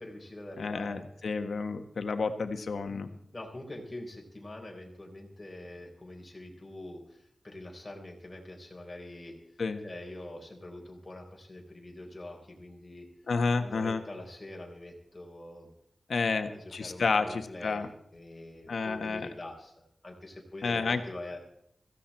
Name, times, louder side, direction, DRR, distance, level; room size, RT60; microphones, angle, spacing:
voice 1, 0.0-1.0 2.9-9.3 9.8-13.1 13.6-15.7 16.5-17.9 18.1-19.7 20.0-21.4, left 1 dB, 25° left, 0 dB, 4.5 m, -44 dB
voice 2, 0.6-3.1 9.6-9.8 13.3-14.0 16.1-17.9 18.7-19.3 20.6-21.0, left 4 dB, 80° left, 7 dB, 1.4 m, -30 dB
17.0 x 15.5 x 4.4 m, 0.73 s
wide cardioid pair, 120°, 0 cm